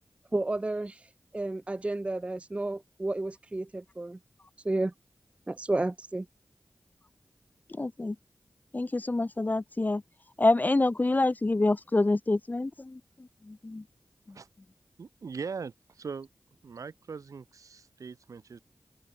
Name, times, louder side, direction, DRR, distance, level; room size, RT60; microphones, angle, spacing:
voice 1, 0.3-1.1 1.3-4.2 4.6-4.9 5.5-6.3, right 2 dB, 20° right, 0.4 m, -31 dB
voice 2, 7.8-8.2 8.7-10.0 10.4-13.0 13.5-13.8, left 2 dB, 30° left, 0.6 m, -26 dB
voice 3, 15.0-16.3 16.6-18.6, right 5 dB, 80° right, 1.4 m, -40 dB
open air
cardioid pair, 45°, 6 cm